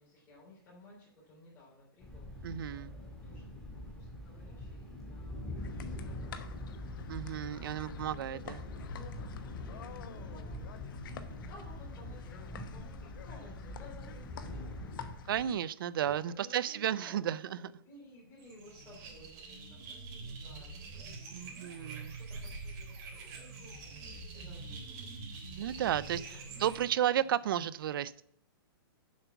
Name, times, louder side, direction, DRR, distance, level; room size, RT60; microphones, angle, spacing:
voice 1, 0.0-3.5 3.7-6.5 6.8-7.9 8.2-15.2 16.0-25.1 25.7-26.7 27.2-27.3, left 1 dB, 20° left, 4.1 m, -57 dB
Thunder, 2.0-15.1, left 1 dB, 5° left, 2.0 m, -44 dB
voice 2, 2.4-3.0 7.1-8.6 15.3-17.7 21.3-22.1 25.6-28.2, right 10 dB, 65° right, 0.5 m, -33 dB
sound 1, 5.6-15.6, left 6 dB, 60° left, 1.0 m, -47 dB
sound 2, 18.4-26.8, right 3 dB, 45° right, 3.4 m, -45 dB
7.3 x 5.8 x 6.9 m
hypercardioid pair, 155°, 13 cm